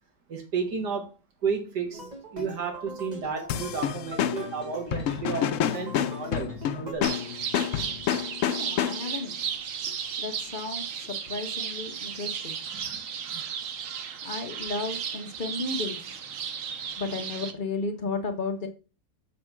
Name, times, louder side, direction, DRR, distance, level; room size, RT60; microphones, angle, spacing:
voice 1, 0.3-1.1 1.4-7.2 12.7-13.0 13.3-13.5, right 5 dB, 75° right, 2.2 m, -33 dB
sound 1, 1.9-6.9, right 1 dB, 30° right, 1.2 m, -42 dB
sound 2, 3.5-9.3, left 9 dB, 75° left, 0.7 m, -29 dB
sound 3, 7.0-17.5, right 7 dB, 60° right, 1.0 m, -35 dB
voice 2, 8.4-9.5 9.8-12.6 14.2-16.2 17.0-18.7, left 3 dB, 35° left, 1.0 m, -34 dB
6.6 x 3.5 x 5.9 m
omnidirectional pair, 1.8 m